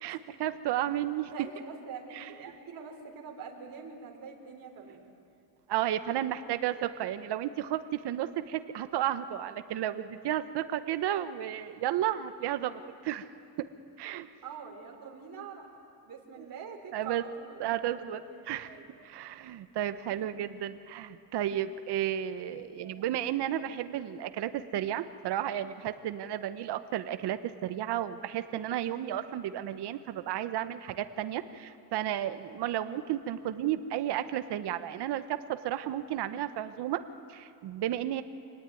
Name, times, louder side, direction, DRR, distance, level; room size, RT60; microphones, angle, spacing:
voice 1, 0.0-1.3 2.2-2.3 5.7-13.3 14.0-14.3 16.9-17.2 17.6-18.2 18.5-18.7 19.0-37.0 37.3-38.2, right 11 dB, 80° right, 11 dB, 1.1 m, -33 dB
voice 2, 1.3-5.0 14.4-15.7 16.1-18.9 20.1-20.2 22.6-23.0, right 6 dB, 55° right, 1 dB, 3.7 m, -45 dB
26.5 x 19.0 x 9.2 m, 2.5 s
cardioid pair, 135°, 40 cm